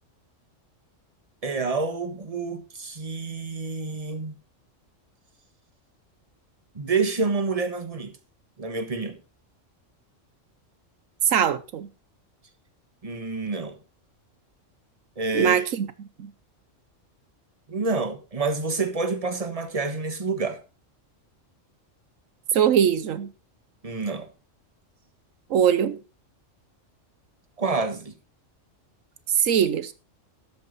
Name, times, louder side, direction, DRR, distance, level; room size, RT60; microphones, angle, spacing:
voice 1, 1.4-4.4 6.7-8.1 8.6-9.2 13.0-13.7 15.2-15.6 17.7-20.6 23.8-24.3 27.6-28.1, right 4 dB, 30° right, 1.5 m, -28 dB
voice 2, 11.2-11.9 15.3-16.3 22.5-23.3 25.5-26.0 29.3-29.9, right 8 dB, 85° right, 1.2 m, -22 dB
12.5 x 8.6 x 4.0 m
omnidirectional pair, 1.3 m